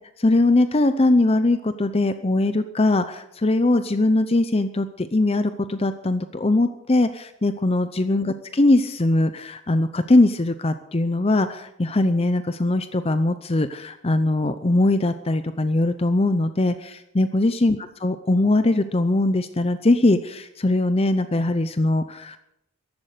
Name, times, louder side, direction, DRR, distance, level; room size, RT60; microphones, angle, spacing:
voice 1, 0.2-22.4, left 2 dB, 25° left, 11 dB, 0.6 m, -21 dB
14.5 x 11.5 x 6.6 m, 0.82 s
head